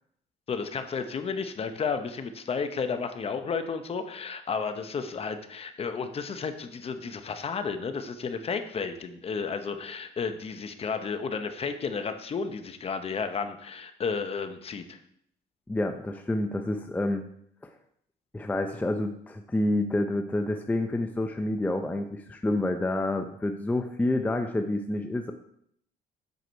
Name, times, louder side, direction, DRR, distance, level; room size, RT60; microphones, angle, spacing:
voice 1, 0.5-15.0, left 5 dB, 35° left, 8 dB, 0.8 m, -32 dB
voice 2, 15.7-17.2 17.6-17.7 18.3-25.3, left 1 dB, 10° left, 6 dB, 0.5 m, -28 dB
8.0 x 4.8 x 4.6 m, 0.69 s
cardioid pair, 110°, 17 cm